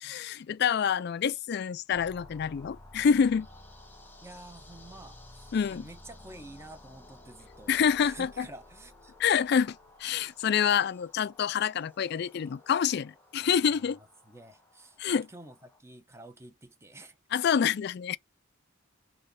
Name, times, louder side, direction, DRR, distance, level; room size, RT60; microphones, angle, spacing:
voice 1, 0.0-3.5 5.5-5.8 7.7-8.5 9.2-14.0 15.0-15.3 17.3-18.2, left 7 dB, 55° left, 0.3 m, -27 dB
sound 1, 1.9-15.8, left 1 dB, 10° left, 1.6 m, -53 dB
voice 2, 4.2-7.7 8.0-9.1 13.4-15.0 15.3-17.2 17.8-17.9, right 2 dB, 15° right, 1.1 m, -49 dB
6.2 x 3.0 x 5.6 m
head